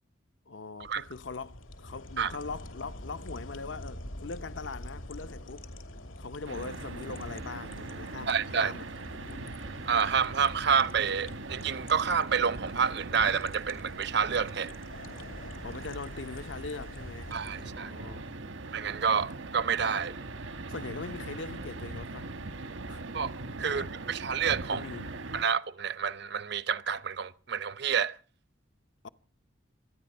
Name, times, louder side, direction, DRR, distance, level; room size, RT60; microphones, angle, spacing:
voice 1, 0.5-5.7 6.2-9.6 15.6-18.3 20.7-22.3 22.9-23.0 23.7-23.9 24.7-25.1 29.0-29.1, left 4 dB, 65° left, 0.7 m, -41 dB
sound 1, 0.8-17.7, left 1 dB, 85° left, 2.7 m, -46 dB
sound 2, 6.4-25.4, right 2 dB, 75° right, 1.2 m, -41 dB
voice 2, 8.3-8.7 9.9-14.7 17.3-17.9 18.7-20.2 23.1-23.3 23.6-24.8 25.3-28.2, right 6 dB, 55° right, 0.7 m, -28 dB
26.0 x 10.5 x 5.5 m
head